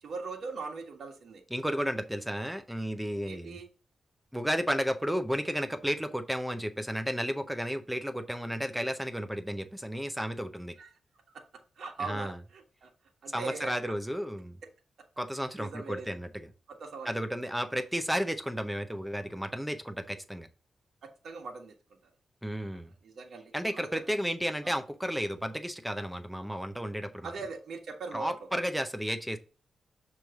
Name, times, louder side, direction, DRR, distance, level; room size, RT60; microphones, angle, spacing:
voice 1, 0.0-1.4 3.3-3.7 10.8-10.9 11.8-12.9 13.2-13.9 15.6-16.1 16.7-17.1 21.0-21.7 23.0-23.9 24.6-24.8 27.2-28.3, right 4 dB, 65° right, 1 dB, 1.2 m, -40 dB
voice 2, 1.5-3.6 4.3-10.7 12.0-12.4 13.3-14.6 15.2-16.5 17.0-20.5 22.4-22.9 23.5-27.3 28.1-29.4, equal, 5° right, 8 dB, 0.6 m, -33 dB
6.8 x 3.1 x 4.8 m, 0.35 s
wide cardioid pair, 135°, 0 cm